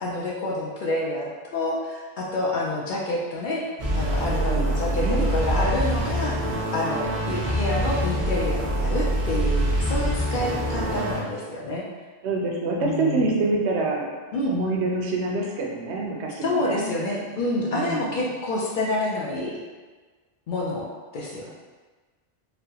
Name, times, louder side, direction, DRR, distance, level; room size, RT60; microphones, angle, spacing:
voice 1, 0.0-3.6 3.9-5.1 5.3-6.4 6.7-11.9 12.8-13.3 14.3-14.6 16.4-19.6 20.5-20.9 21.1-21.5, left 1 dB, 60° left, -3 dB, 0.6 m, -28 dB
sound 1, 3.8-11.2, right 1 dB, 50° right, 0.8 m, -25 dB
voice 2, 4.5-5.3 12.2-14.1 14.5-16.9 17.7-18.3 21.5-21.6, right 3 dB, 85° right, -1 dB, 0.9 m, -26 dB
4.0 x 2.1 x 2.8 m, 1.3 s
omnidirectional pair, 1.1 m